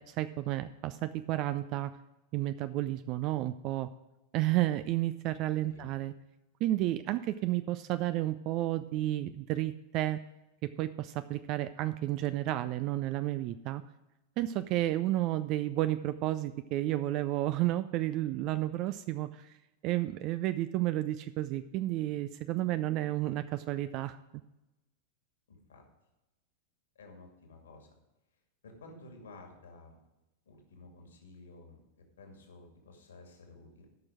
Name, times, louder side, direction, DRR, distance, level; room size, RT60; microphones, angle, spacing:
voice 1, 0.0-1.9 2.3-3.9 4.3-6.1 6.6-10.2 10.6-13.8 14.4-19.6 19.8-24.2, right 15 dB, 40° right, 13 dB, 0.4 m, -31 dB
voice 2, 25.5-25.8 27.0-27.9 28.6-30.0 30.5-31.8 32.2-33.9, left 2 dB, 65° left, 3 dB, 2.3 m, -53 dB
13.0 x 6.1 x 4.8 m, 1.0 s
figure-of-eight pair, 90°, 0 cm